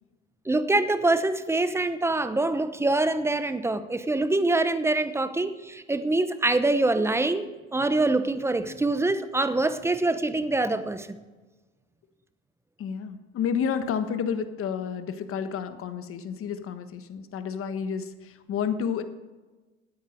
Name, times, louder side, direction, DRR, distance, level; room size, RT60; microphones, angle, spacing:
voice 1, 0.5-11.1, right 2 dB, 10° right, 12 dB, 0.8 m, -25 dB
voice 2, 12.8-19.0, left 7 dB, 40° left, 10 dB, 1.3 m, -30 dB
13.0 x 9.4 x 5.1 m, 1.2 s
hypercardioid pair, 90°, 33 cm